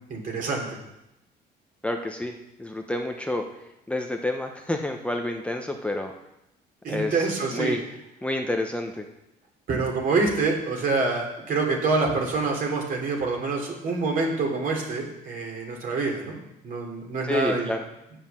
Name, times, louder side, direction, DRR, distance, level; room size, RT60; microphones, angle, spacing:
voice 1, 0.1-0.8 6.8-7.8 9.7-16.4 16.6-17.7, right 3 dB, 55° right, 0 dB, 3.3 m, -26 dB
voice 2, 1.8-3.4 3.9-6.1 6.9-7.3 7.5-7.8 8.2-9.0 17.2-17.8, left 1 dB, 5° left, 3 dB, 0.8 m, -29 dB
7.9 x 7.5 x 7.4 m, 0.88 s
cardioid pair, 110°, 17 cm